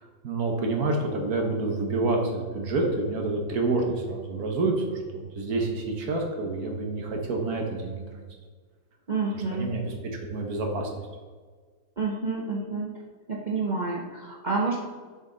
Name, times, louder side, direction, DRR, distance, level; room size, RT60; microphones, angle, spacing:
voice 1, 0.2-4.7 5.1-8.2 9.3-9.9 10.3-10.9, right 3 dB, 55° right, 2 dB, 1.5 m, -28 dB
voice 2, 9.1-9.7 12.0-13.0 13.3-14.9, right 3 dB, 80° right, -3 dB, 0.4 m, -29 dB
6.9 x 5.4 x 3.8 m, 1.5 s
omnidirectional pair, 2.0 m